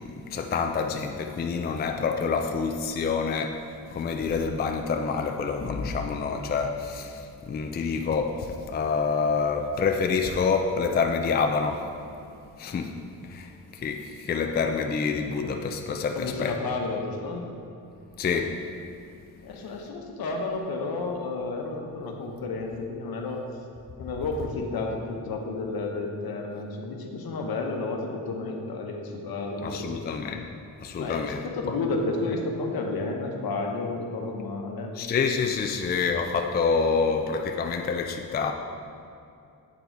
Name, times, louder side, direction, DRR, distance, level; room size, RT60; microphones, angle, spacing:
voice 1, 0.0-11.9 12.6-13.0 13.2-16.6 18.2-18.6 29.6-30.5 30.8-31.8 35.0-38.5, left 5 dB, 25° left, 4 dB, 0.3 m, -27 dB
voice 2, 16.1-17.5 19.4-23.4 24.0-30.0 31.0-34.9, left 3 dB, 70° left, 2 dB, 1.0 m, -31 dB
8.6 x 4.0 x 4.5 m, 2.6 s
cardioid pair, 110°, 37 cm